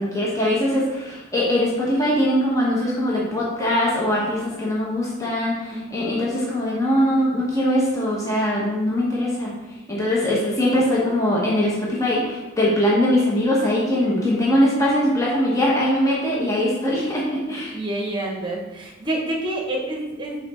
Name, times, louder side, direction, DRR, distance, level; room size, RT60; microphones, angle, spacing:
voice 1, 0.0-9.5 9.9-17.7, left 1 dB, 15° left, -5 dB, 1.0 m, -21 dB
voice 2, 5.7-6.1 14.1-14.6 17.7-20.4, right 1 dB, 20° right, -1 dB, 1.1 m, -28 dB
5.9 x 3.9 x 4.3 m, 1.1 s
head